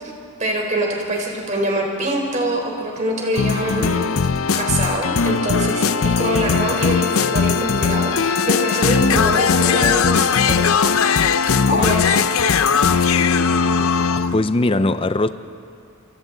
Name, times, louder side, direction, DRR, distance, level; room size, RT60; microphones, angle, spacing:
voice 1, 0.4-4.1 4.6-10.8 11.7-12.2, right 1 dB, 35° right, 3.8 m, -24 dB
sound 1, 3.3-14.4, left 6 dB, 75° left, 0.6 m, -18 dB
voice 2, 13.8-15.3, left 2 dB, 25° left, 0.5 m, -21 dB
28.0 x 24.0 x 3.9 m
head